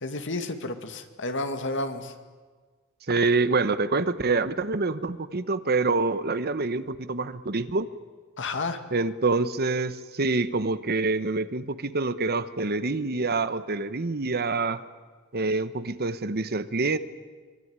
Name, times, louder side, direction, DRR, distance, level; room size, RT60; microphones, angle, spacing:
voice 1, 0.0-2.1 8.4-8.8, left 2 dB, 60° left, 7 dB, 2.2 m, -31 dB
voice 2, 3.1-7.9 8.9-14.8 15.3-17.0, right 3 dB, 45° right, 13 dB, 1.1 m, -26 dB
24.0 x 23.5 x 9.7 m, 1.5 s
head